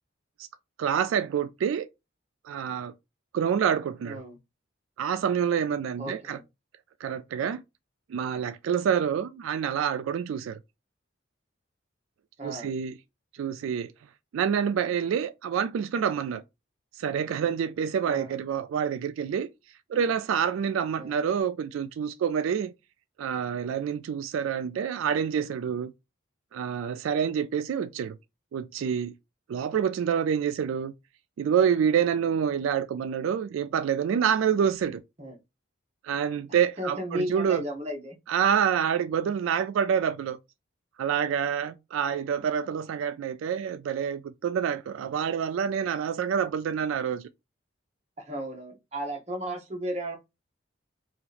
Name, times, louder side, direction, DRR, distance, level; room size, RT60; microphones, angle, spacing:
voice 1, 0.8-1.9 2.5-2.9 3.3-4.2 5.0-6.4 7.0-7.6 8.1-10.6 12.4-13.0 13.4-13.9 14.3-16.4 17.0-19.5 19.9-22.7 23.2-25.9 26.5-28.2 28.5-29.1 29.5-30.9 31.4-35.0 36.0-37.6 38.3-40.4 41.0-47.3, right 8 dB, 85° right, 0.3 m, -27 dB
voice 2, 4.0-4.4 6.0-6.4 12.4-12.7 18.0-18.3 21.0-21.2 35.2-35.4 36.8-38.2 48.2-50.2, right 1 dB, 35° right, 0.9 m, -34 dB
2.8 x 2.4 x 3.9 m
head